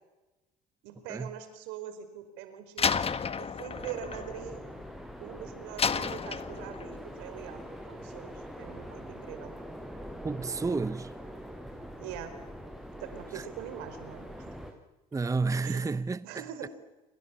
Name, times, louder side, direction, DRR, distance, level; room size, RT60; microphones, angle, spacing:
voice 1, 0.8-2.9 3.4-4.6 5.2-9.5 12.0-12.3 13.0-14.5 15.6-15.8 16.2-16.7, right 10 dB, 75° right, 4.8 m, -43 dB
Slam, 2.8-5.2 5.8-7.0, left 6 dB, 30° left, 1.5 m, -32 dB
sound 1, 3.7-14.7, equal, ahead, 7.2 m, -43 dB
voice 2, 10.2-11.1 13.3-13.4 15.1-16.7, right 4 dB, 15° right, 0.8 m, -31 dB
29.0 x 24.5 x 7.3 m
hypercardioid pair, 65°, 19 cm